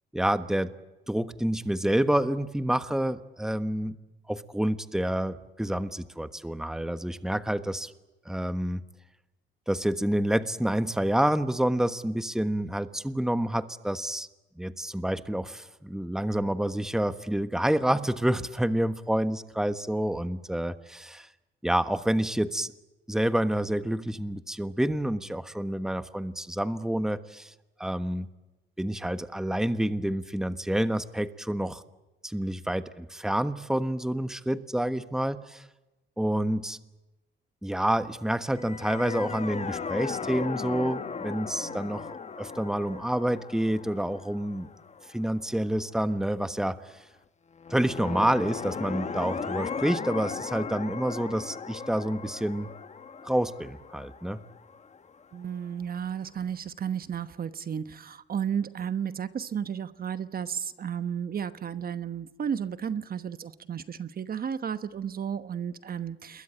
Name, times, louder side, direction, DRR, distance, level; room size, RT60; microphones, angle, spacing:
voice 1, 0.1-0.7 1.1-4.0 4.3-7.9 8.2-8.8 9.7-14.3 14.6-21.3 21.6-22.7 23.1-27.5 27.8-28.3 28.8-31.8 32.2-35.7 36.2-36.8 37.6-44.7 45.1-47.0 47.7-52.7 53.2-54.4, right 1 dB, 5° right, 11 dB, 1.3 m, -28 dB
sound 1, 38.5-45.7 47.6-55.4, left 5 dB, 35° left, 1.3 m, -37 dB
voice 2, 41.6-42.1 55.3-66.4, right 8 dB, 50° right, 12 dB, 1.1 m, -33 dB
27.5 x 22.0 x 8.9 m, 1.0 s
cardioid pair, 90°, 20 cm